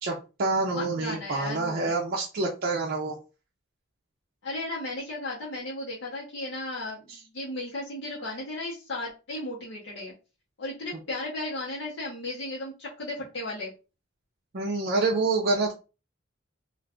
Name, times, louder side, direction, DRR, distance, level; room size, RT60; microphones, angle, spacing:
voice 1, 0.0-3.2 14.5-15.7, right 3 dB, 55° right, -2 dB, 0.6 m, -27 dB
voice 2, 0.7-1.9 4.4-10.1 10.6-13.7, left 2 dB, 65° left, -6 dB, 1.0 m, -35 dB
2.5 x 2.4 x 3.4 m, 0.31 s
head